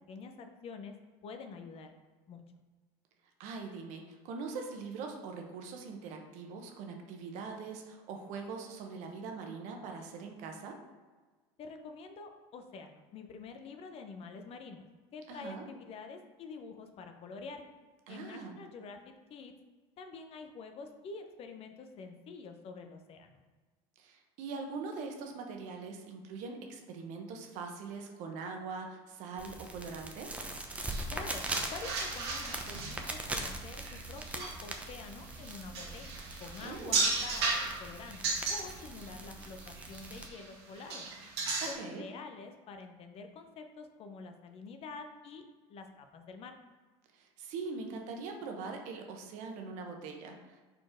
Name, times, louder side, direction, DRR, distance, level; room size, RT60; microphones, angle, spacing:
voice 1, 0.1-0.9 1.2-1.9 2.3-2.4 11.6-14.9 15.1-17.6 18.1-19.5 20.0-23.4 31.1-31.4 31.7-41.1 41.7-45.4 45.7-46.6, left 4 dB, 45° left, 6 dB, 0.8 m, -47 dB
voice 2, 3.4-10.8 15.3-15.6 18.1-18.6 24.0-30.4 36.6-37.0 41.6-42.0 47.1-50.6, right 4 dB, 60° right, 3 dB, 1.1 m, -42 dB
sound 1, 29.4-40.3, right 1 dB, 10° right, 0.8 m, -41 dB
sound 2, 30.7-39.1 39.4-40.5 40.7-41.7, right 3 dB, 85° right, 1.5 m, -36 dB
4.6 x 4.1 x 5.1 m, 1.4 s
supercardioid pair, 95°, 14 cm